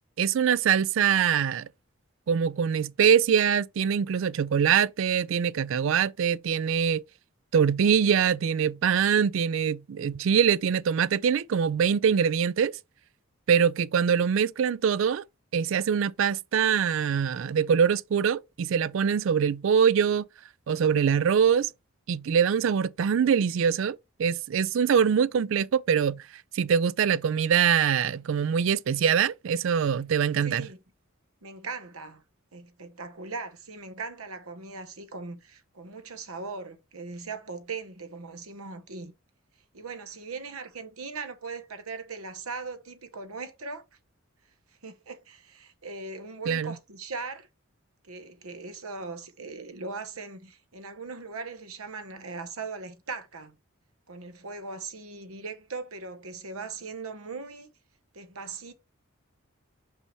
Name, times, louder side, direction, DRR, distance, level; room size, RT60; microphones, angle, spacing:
voice 1, 0.2-1.7 2.3-7.0 7.5-12.8 13.5-15.2 15.5-20.2 20.7-21.7 22.1-26.2 26.5-30.7 46.5-46.7, right 7 dB, 65° right, 0.3 m, -23 dB
voice 2, 30.4-30.8 31.4-32.2 32.5-39.1 39.7-43.8 44.8-47.5 48.0-53.6 54.1-57.7 58.1-58.7, right 4 dB, 90° right, 1.0 m, -39 dB
5.7 x 5.4 x 3.1 m
head